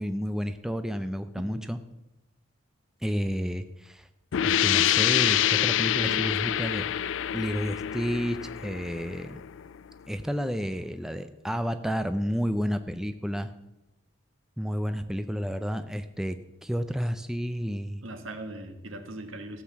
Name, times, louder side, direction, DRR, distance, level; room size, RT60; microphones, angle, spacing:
voice 1, 0.0-1.8 3.0-4.1 4.4-6.9 7.3-9.4 10.1-13.5 14.6-18.0, equal, 5° right, 9 dB, 0.4 m, -31 dB
sound 1, 4.3-9.8, left 11 dB, 70° left, 0.3 m, -26 dB
voice 2, 6.0-6.6 18.0-19.6, right 2 dB, 80° right, 7 dB, 1.4 m, -39 dB
13.5 x 6.6 x 7.1 m, 0.94 s
head